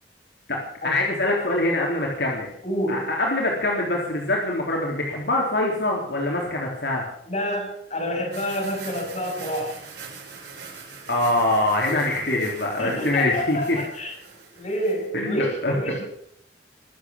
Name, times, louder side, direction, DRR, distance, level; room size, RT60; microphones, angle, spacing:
voice 1, 0.8-2.5 2.9-7.0 11.1-13.8 15.1-16.0, left 2 dB, 70° left, -2 dB, 3.6 m, -24 dB
voice 2, 2.6-3.1 7.3-9.8 12.8-14.1 14.5-16.0, equal, 40° left, 0 dB, 6.9 m, -28 dB
sound 1, 8.3-15.1, right 5 dB, 65° right, 7.5 m, -42 dB
23.0 x 8.5 x 7.2 m, 0.71 s
head